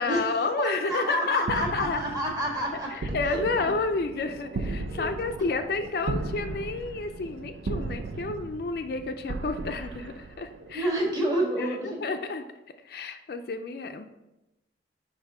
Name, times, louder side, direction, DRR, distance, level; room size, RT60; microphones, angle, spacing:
voice 1, 0.0-2.0 2.9-10.9 11.6-12.4 12.8-14.0, left 3 dB, 55° left, 7 dB, 0.4 m, -30 dB
voice 2, 0.6-2.9 3.2-3.4 4.9-5.0 10.7-12.0, right 1 dB, 20° right, -2 dB, 1.4 m, -28 dB
sound 1, 1.4-10.9, right 3 dB, 90° right, 0.5 m, -36 dB
5.4 x 3.9 x 4.8 m, 0.96 s
head